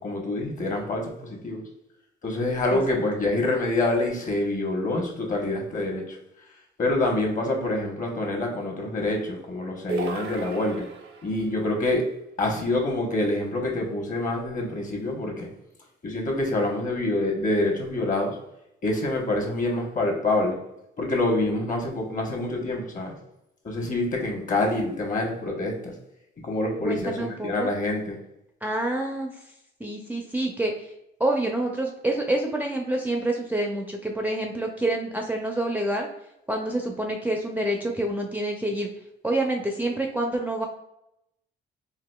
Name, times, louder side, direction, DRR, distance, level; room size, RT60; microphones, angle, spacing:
voice 1, 0.0-1.6 2.2-6.2 6.8-10.8 11.2-12.0 12.4-15.5 16.0-18.4 18.8-20.6 21.0-23.1 23.6-25.9 26.4-28.2, left 2 dB, 40° left, 1 dB, 1.0 m, -26 dB
sound 1, 9.9-11.4, right 4 dB, 80° right, 0.7 m, -33 dB
voice 2, 26.8-27.7 28.6-29.4 29.8-30.9 31.2-36.1 36.5-38.9 39.2-40.7, right 1 dB, 10° right, 1 dB, 0.4 m, -27 dB
3.9 x 2.5 x 2.2 m, 0.82 s
cardioid pair, 90°, 20 cm